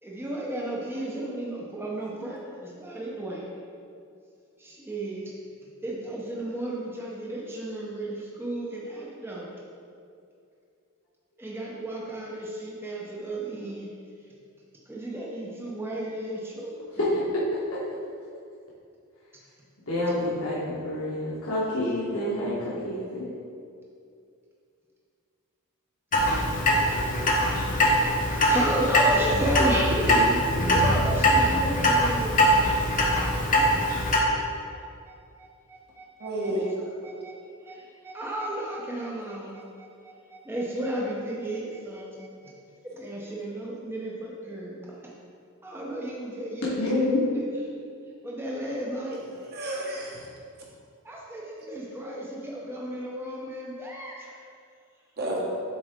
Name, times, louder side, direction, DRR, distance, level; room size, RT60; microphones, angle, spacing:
voice 1, 0.0-3.5 4.6-5.3 5.8-9.5 11.4-13.9 14.9-17.1 27.0-29.9 30.6-32.6 34.7-34.8 35.1-36.7 37.0-37.3 37.6-42.3 42.8-45.1 45.6-46.9 48.2-49.2 51.0-54.4, right 1 dB, 10° right, -4 dB, 0.6 m, -34 dB
voice 2, 19.9-20.6 20.8-23.2 26.9-27.2 46.8-47.2, left 1 dB, 65° left, -8 dB, 1.3 m, -28 dB
Clock, 26.1-34.2, equal, 35° left, 0.8 m, -22 dB
voice 3, 29.1-29.6 30.0-30.2 36.2-36.7 49.4-50.3 55.2-55.4, right 1 dB, 45° right, -3 dB, 1.1 m, -31 dB
7.1 x 4.2 x 3.6 m, 2.4 s
head